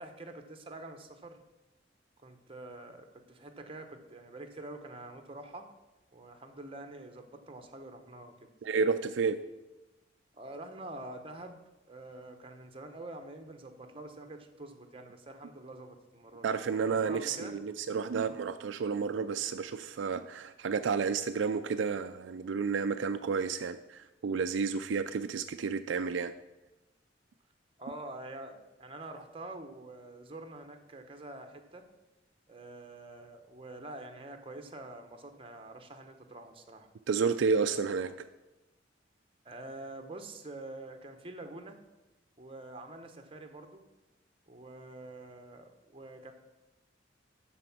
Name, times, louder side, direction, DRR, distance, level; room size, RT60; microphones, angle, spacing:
voice 1, 0.0-1.4 2.2-5.7 6.1-8.5 10.3-16.5 16.9-17.5 27.8-31.9 32.5-36.9 39.4-41.8 42.4-43.8 44.5-46.3, right 2 dB, 30° right, 6 dB, 0.9 m, -46 dB
voice 2, 8.6-9.4 16.4-26.3 37.1-38.3, right 5 dB, 75° right, 9 dB, 0.4 m, -31 dB
12.5 x 4.4 x 6.0 m, 1.0 s
head